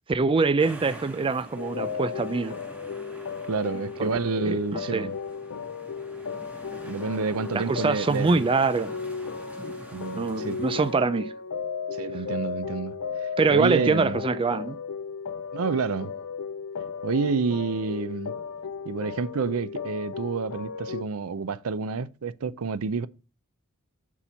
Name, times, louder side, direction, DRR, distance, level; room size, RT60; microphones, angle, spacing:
voice 1, 0.1-2.6 4.0-4.1 4.5-5.1 7.5-8.9 9.6-9.7 10.1-11.3 13.4-14.8, right 4 dB, 25° right, 0.4 m, -24 dB
sound 1, 0.6-10.9, right 1 dB, 5° right, 1.4 m, -46 dB
sound 2, 1.6-21.0, left 6 dB, 70° left, 0.5 m, -35 dB
voice 2, 3.5-5.2 6.8-8.4 9.9-10.7 11.9-12.9 13.2-14.2 15.5-16.1 17.0-18.3 18.8-23.1, right 5 dB, 80° right, 0.5 m, -29 dB
7.1 x 4.4 x 6.8 m
head